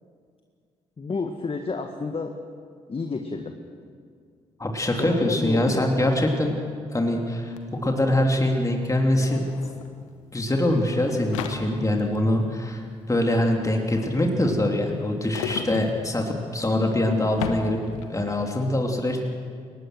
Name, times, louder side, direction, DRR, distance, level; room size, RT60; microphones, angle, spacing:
voice 1, 1.0-2.3 2.9-3.6 5.0-6.0, left 4 dB, 35° left, 5 dB, 1.8 m, -30 dB
voice 2, 4.6-6.6 6.9-7.5 7.8-9.4 10.3-12.8 13.1-17.8 18.1-19.2, left 1 dB, 20° left, 1 dB, 3.1 m, -23 dB
sound 1, 7.6-7.7 7.8-18.3, left 6 dB, 80° left, 1.3 m, -38 dB
23.5 x 19.5 x 6.4 m, 2.1 s
figure-of-eight pair, 40°, 16 cm